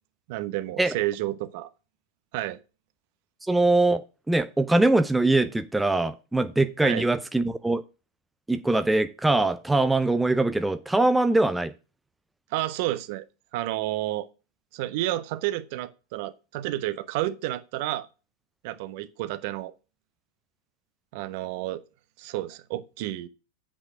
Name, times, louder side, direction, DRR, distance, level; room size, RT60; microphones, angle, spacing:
voice 1, 0.3-1.7 2.3-2.6 6.8-7.1 12.5-13.2 13.5-14.3 14.7-18.1 18.6-19.7 21.1-21.8 22.2-23.3, right 15 dB, 50° right, 0.9 m, -30 dB
voice 2, 3.5-4.0 4.3-7.8 8.5-11.7, right 2 dB, 5° right, 0.5 m, -22 dB
8.1 x 6.1 x 4.9 m
figure-of-eight pair, 95°, 0 cm